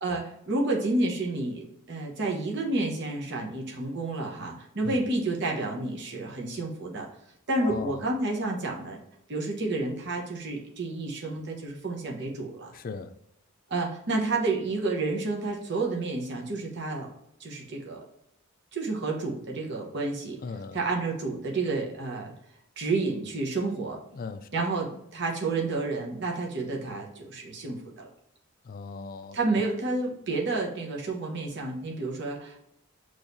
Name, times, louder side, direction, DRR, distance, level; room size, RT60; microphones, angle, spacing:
voice 1, 0.0-7.1 7.5-9.0 9.3-12.7 13.7-17.1 17.4-18.0 18.7-20.4 20.7-22.3 22.8-24.0 24.5-28.1 29.3-32.6, right 2 dB, 60° right, 0.9 m, -30 dB
voice 2, 7.6-8.1 12.7-13.1 20.4-20.8 24.1-24.7 28.6-29.4, left 4 dB, 45° left, 0.4 m, -38 dB
6.2 x 3.1 x 2.6 m
head